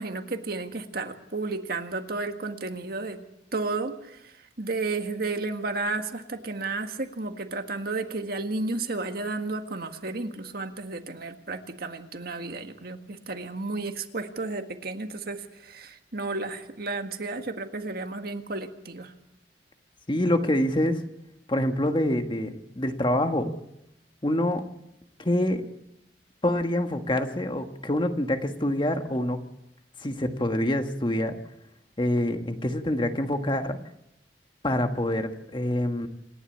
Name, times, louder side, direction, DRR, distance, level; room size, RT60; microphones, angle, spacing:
voice 1, 0.0-3.2 3.5-19.1, right 3 dB, 60° right, 6 dB, 1.7 m, -32 dB
voice 2, 20.1-21.0 21.5-23.5 24.2-24.6 25.2-25.6 26.4-29.4 30.0-31.3 32.0-33.8 34.6-36.1, left 1 dB, 30° left, 6 dB, 1.5 m, -26 dB
27.5 x 11.0 x 8.6 m, 0.82 s
head